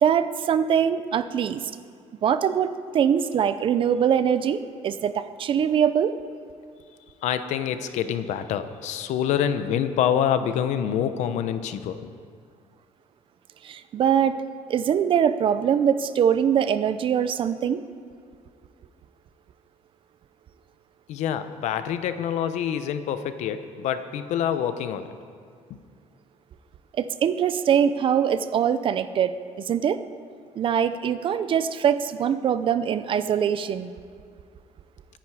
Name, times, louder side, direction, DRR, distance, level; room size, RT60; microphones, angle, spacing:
voice 1, 0.0-1.7 2.2-6.1 13.6-14.4 14.7-17.8 27.0-30.0 30.6-33.9, right 8 dB, 45° right, 12 dB, 0.6 m, -23 dB
voice 2, 7.2-12.0 21.1-25.1, left 9 dB, 80° left, 10 dB, 0.9 m, -26 dB
23.5 x 10.5 x 4.9 m, 2.2 s
cardioid pair, 145°, 12 cm